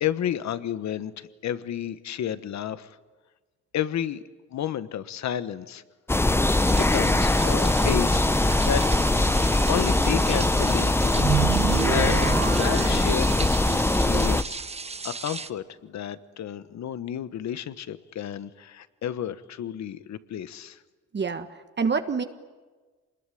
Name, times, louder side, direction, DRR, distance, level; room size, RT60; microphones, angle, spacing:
voice 1, 0.0-2.9 3.7-4.2 4.5-5.8 6.6-8.8 9.7-11.4 11.7-12.2 12.5-14.6 15.0-20.8, left 10 dB, 65° left, 14 dB, 1.3 m, -31 dB
sound 1, 6.1-14.4, left 2 dB, 10° left, 0.7 m, -22 dB
sound 2, 6.5-15.5, right 4 dB, 20° right, 0.9 m, -36 dB
sound 3, 11.2-13.7, right 7 dB, 55° right, 2.1 m, -28 dB
voice 2, 21.1-22.2, right 5 dB, 35° right, 8 dB, 1.5 m, -27 dB
25.5 x 21.0 x 10.0 m, 1.4 s
cardioid pair, 90°, 30 cm